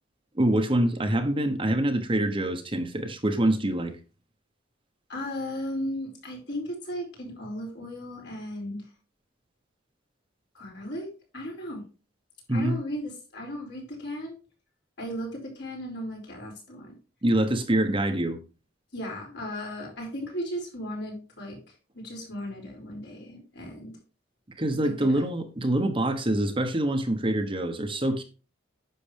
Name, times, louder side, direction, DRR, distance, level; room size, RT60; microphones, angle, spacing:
voice 1, 0.4-3.9 12.5-12.8 17.2-18.4 24.6-28.2, right 1 dB, 25° right, 6 dB, 1.2 m, -25 dB
voice 2, 5.1-8.8 10.5-11.8 12.5-14.4 15.0-17.0 18.9-21.6 21.9-24.0 25.0-25.2, equal, 60° left, -1 dB, 4.9 m, -36 dB
10.0 x 7.0 x 3.5 m, 0.32 s
head